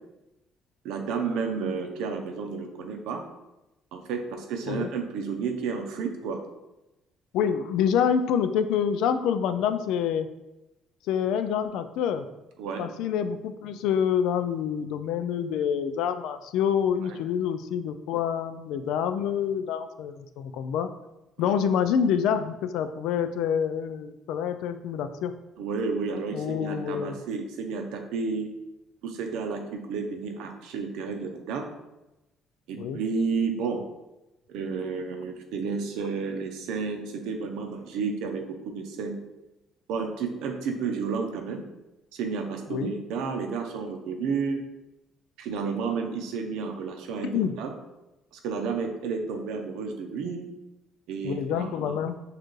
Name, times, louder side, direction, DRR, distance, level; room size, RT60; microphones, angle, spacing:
voice 1, 0.8-3.2 3.9-6.4 12.6-12.8 17.0-17.2 21.4-21.5 25.6-28.5 29.0-31.7 32.7-33.8 34.5-39.2 39.9-41.6 42.1-44.6 45.4-47.7 48.3-50.5 51.1-52.0, right 5 dB, 90° right, 4 dB, 0.7 m, -31 dB
voice 2, 7.3-10.3 11.1-12.3 12.8-20.9 21.4-25.3 26.3-27.2 32.8-33.0 42.7-42.9 47.2-47.6 51.2-52.2, left 8 dB, 80° left, 10 dB, 0.3 m, -27 dB
6.5 x 2.5 x 3.1 m, 0.97 s
cardioid pair, 140°, 0 cm